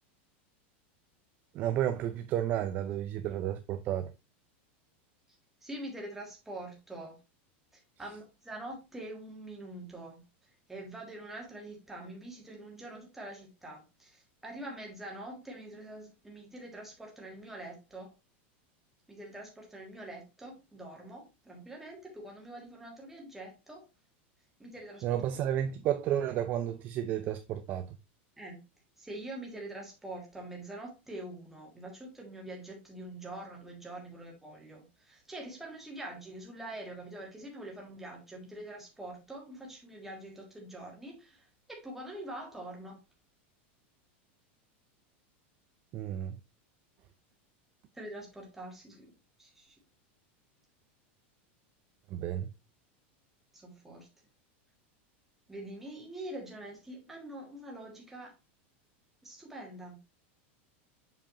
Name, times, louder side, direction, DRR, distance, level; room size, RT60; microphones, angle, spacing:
voice 1, 1.5-4.1 25.0-28.0 45.9-46.4 52.1-52.5, right 11 dB, 25° right, 0.4 m, -32 dB
voice 2, 5.6-7.2 7.7-10.2 10.7-18.1 19.1-23.8 24.6-25.2 28.4-28.6 29.0-43.0 47.9-49.1 49.4-49.8 53.5-54.1 55.5-58.3 59.2-60.0, right 1 dB, 5° right, 1.6 m, -45 dB
7.1 x 5.0 x 2.8 m
supercardioid pair, 175°, 6 cm